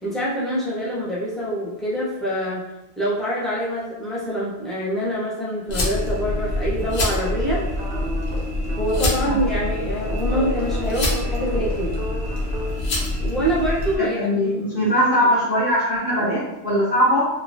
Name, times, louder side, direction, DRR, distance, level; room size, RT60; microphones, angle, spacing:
voice 1, 0.0-2.6 3.0-7.6 8.8-12.0 13.2-14.2 14.4-15.2 16.2-16.4, equal, ahead, -8 dB, 0.4 m, -25 dB
sound 1, 5.7-14.0, left 2 dB, 75° left, 1.1 m, -25 dB
sound 2, 6.8-12.8, right 2 dB, 60° right, 0.6 m, -35 dB
voice 2, 14.0-17.2, equal, 50° left, -9 dB, 0.8 m, -20 dB
3.0 x 2.2 x 2.5 m, 0.94 s
omnidirectional pair, 1.3 m